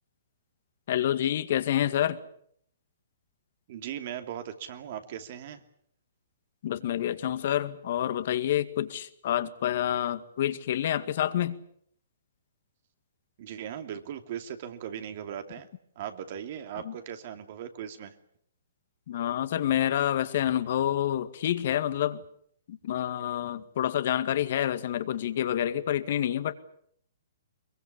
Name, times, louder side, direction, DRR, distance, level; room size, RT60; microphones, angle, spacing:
voice 1, 0.9-2.2 6.6-11.6 16.8-16.9 19.1-22.2 22.7-26.5, left 11 dB, 55° left, 12 dB, 2.0 m, -28 dB
voice 2, 3.7-5.6 13.4-15.7 16.0-18.1, right 9 dB, 50° right, 8 dB, 2.8 m, -38 dB
23.0 x 22.5 x 8.5 m, 0.68 s
hypercardioid pair, 135°, 0 cm